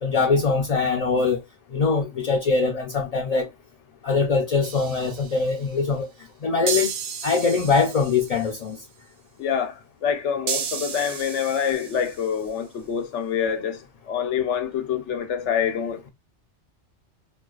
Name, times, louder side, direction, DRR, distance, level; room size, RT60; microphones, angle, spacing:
voice 1, 0.0-1.4 1.7-3.5 4.0-6.1 6.4-6.9 7.2-8.8, left 4 dB, 45° left, 0.5 m, -22 dB
sound 1, 4.6-5.5 6.7-8.6 10.5-12.4, right 7 dB, 55° right, 0.6 m, -33 dB
voice 2, 9.4-9.7 10.0-13.8 14.1-16.1, left 8 dB, 85° left, 1.1 m, -26 dB
4.3 x 2.3 x 2.3 m
omnidirectional pair, 1.2 m